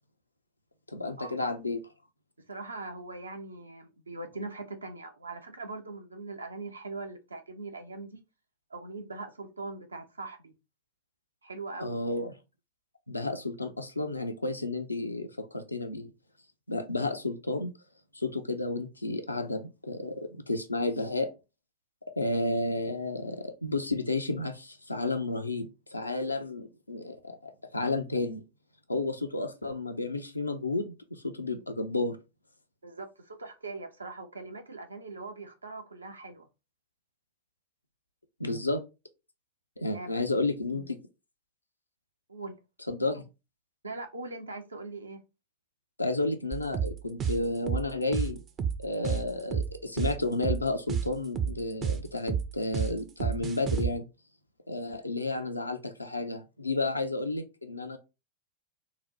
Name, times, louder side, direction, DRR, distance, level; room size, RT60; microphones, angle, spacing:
voice 1, 0.9-1.8 11.8-12.3 13.1-16.1 16.7-17.7 18.1-21.3 22.1-28.4 28.9-32.2 38.4-38.8 39.8-41.0 42.9-43.2 46.0-48.4 48.8-54.1 54.7-58.0, left 2 dB, 85° left, 0.5 m, -32 dB
voice 2, 2.5-8.2 8.7-10.5 11.4-12.0 32.8-36.5 39.9-40.1 42.3-42.5 43.8-45.2, right 3 dB, 75° right, 0.6 m, -41 dB
sound 1, 46.5-53.9, right 7 dB, 30° right, 0.4 m, -30 dB
3.8 x 2.0 x 2.9 m
figure-of-eight pair, 90°, 0 cm